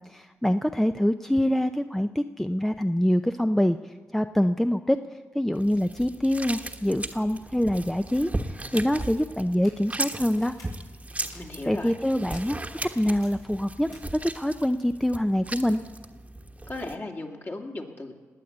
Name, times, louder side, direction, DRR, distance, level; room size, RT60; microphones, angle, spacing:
voice 1, 0.1-5.0 5.3-10.5 11.7-12.6 13.0-15.8, equal, 5° left, 9 dB, 0.6 m, -25 dB
sound 1, 5.6-17.0, right 2 dB, 20° right, 1.2 m, -37 dB
sound 2, 9.4-9.7 10.3-10.6 11.2-11.4 12.3-12.4 13.1-13.3 13.9-14.0, left 3 dB, 80° left, 6.3 m, -51 dB
voice 2, 11.3-11.9 16.7-18.2, left 2 dB, 40° left, 2 dB, 2.6 m, -36 dB
20.0 x 8.6 x 8.0 m, 1.5 s
cardioid pair, 55°, 6 cm